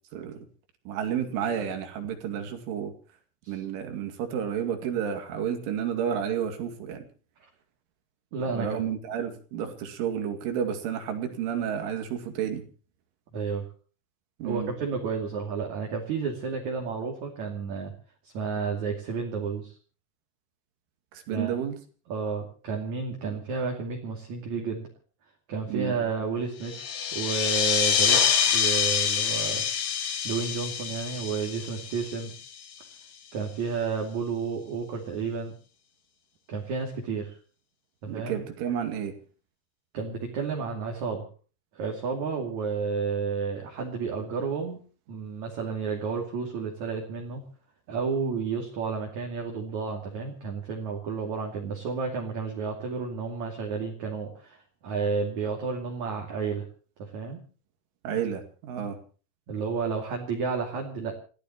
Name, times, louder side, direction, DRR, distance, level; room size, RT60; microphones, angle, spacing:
voice 1, 0.1-0.4 0.9-2.9 3.5-7.1 8.5-12.6 14.4-14.7 21.1-21.8 23.2-23.4 25.7-26.0 38.1-39.1 58.0-59.0, right 8 dB, 80° right, 6 dB, 4.8 m, -31 dB
voice 2, 8.3-8.8 13.3-13.6 14.4-17.9 18.2-19.8 21.3-21.6 22.1-24.9 25.5-28.2 28.5-29.7 30.2-32.3 33.3-35.5 36.5-37.4 38.0-38.4 39.9-41.3 41.7-44.8 45.1-47.4 47.9-56.6 57.0-57.4 59.5-61.1, right 5 dB, 45° right, 0 dB, 3.3 m, -31 dB
sound 1, 26.6-32.8, left 7 dB, 50° left, 2.6 m, -26 dB
29.0 x 15.5 x 3.0 m, 0.38 s
omnidirectional pair, 5.6 m